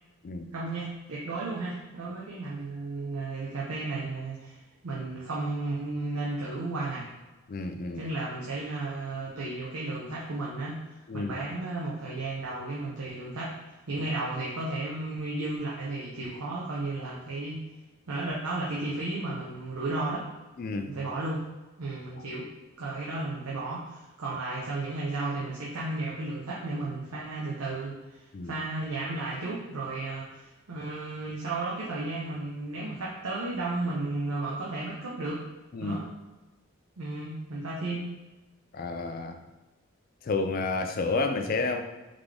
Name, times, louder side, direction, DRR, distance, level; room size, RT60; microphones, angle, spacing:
voice 1, 0.5-7.1 7.9-10.8 11.1-17.6 18.1-20.3 20.9-21.4 21.8-22.5 22.8-35.4 35.8-36.1 37.0-38.2, right 2 dB, 85° right, -5 dB, 0.7 m, -34 dB
voice 2, 7.5-8.0 11.1-11.3 20.6-20.9 28.3-28.6 35.7-36.0 38.7-39.4 40.2-41.8, left 3 dB, 40° left, 7 dB, 0.3 m, -30 dB
3.8 x 3.5 x 3.3 m, 1.1 s
head